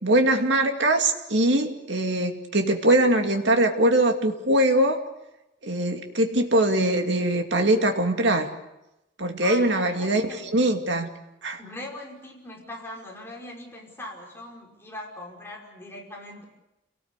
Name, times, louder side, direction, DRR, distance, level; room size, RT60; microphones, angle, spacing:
voice 1, 0.0-5.0 5.6-8.5 9.2-11.1 11.4-11.6, right 1 dB, 60° right, 4 dB, 2.5 m, -22 dB
voice 2, 9.4-10.5 11.6-16.4, left 1 dB, 10° left, -2 dB, 5.3 m, -40 dB
28.5 x 18.5 x 8.3 m, 0.93 s
head